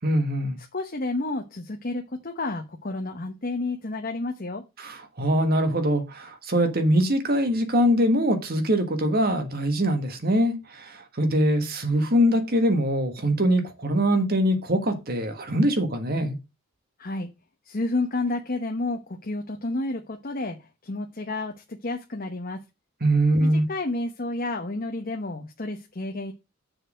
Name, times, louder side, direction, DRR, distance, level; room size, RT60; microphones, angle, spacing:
voice 1, 0.0-0.6 4.8-16.3 23.0-23.6, equal, 45° right, 1.5 m, -23 dB
voice 2, 0.7-4.6 17.0-17.3 17.7-20.6 20.8-22.6 23.4-26.3, left 2 dB, 40° left, 0.9 m, -30 dB
6.8 x 4.2 x 6.2 m
head